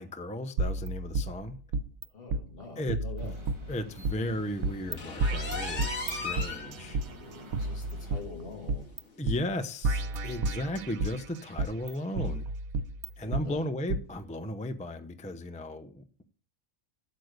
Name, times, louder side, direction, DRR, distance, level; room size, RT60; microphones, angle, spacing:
voice 1, 0.0-1.6 2.8-3.3 3.7-7.0 9.2-12.5 13.2-16.2, left 1 dB, 10° left, 0.5 m, -35 dB
sound 1, 0.6-2.0 2.3-2.4 2.9-4.1 4.6-4.9 5.2-7.1 7.5-9.0 9.3-9.4 9.8-11.2 11.6-13.4 13.9-14.0, right 2 dB, 85° right, 1.2 m, -31 dB
voice 2, 2.1-3.4 6.9-8.9 10.0-10.1 13.2-13.6, left 4 dB, 40° left, 2.5 m, -45 dB
sound 2, 3.2-8.2, left 2 dB, 20° right, 2.1 m, -48 dB
sound 3, 5.0-6.7 7.1-7.2 7.7-7.8 8.1-8.2 9.2-9.3, left 4 dB, 55° left, 2.4 m, -36 dB
8.5 x 8.2 x 6.5 m
omnidirectional pair, 1.5 m